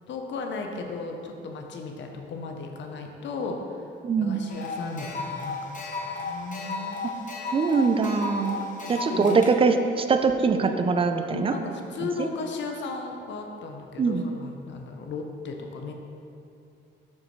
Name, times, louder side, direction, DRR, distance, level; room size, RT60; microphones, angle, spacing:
voice 1, 0.1-3.8 4.2-7.2 8.4-9.4 11.3-15.9, left 4 dB, 65° left, 3 dB, 0.7 m, -36 dB
voice 2, 4.0-4.4 7.5-8.6 8.9-11.5 12.2-12.3 14.0-14.2, right 4 dB, 25° right, 7 dB, 0.4 m, -22 dB
sound 1, 4.5-9.5, left 3 dB, 40° left, 1.0 m, -34 dB
6.5 x 5.8 x 3.1 m, 2.6 s
cardioid pair, 90°, 20 cm